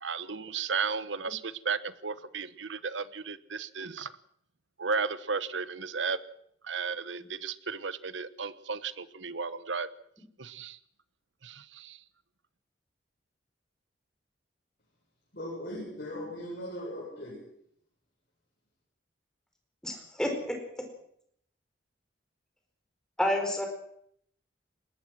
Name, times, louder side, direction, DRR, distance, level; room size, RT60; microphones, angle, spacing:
voice 1, 0.0-4.1 4.8-6.2 6.6-9.9 10.4-10.8 11.4-12.0, right 5 dB, 80° right, 15 dB, 1.1 m, -34 dB
voice 2, 15.3-17.4, equal, 55° left, -5 dB, 7.9 m, -39 dB
voice 3, 19.8-20.8 23.2-23.7, left 1 dB, 5° left, 2 dB, 4.6 m, -30 dB
22.0 x 20.0 x 6.2 m, 0.68 s
head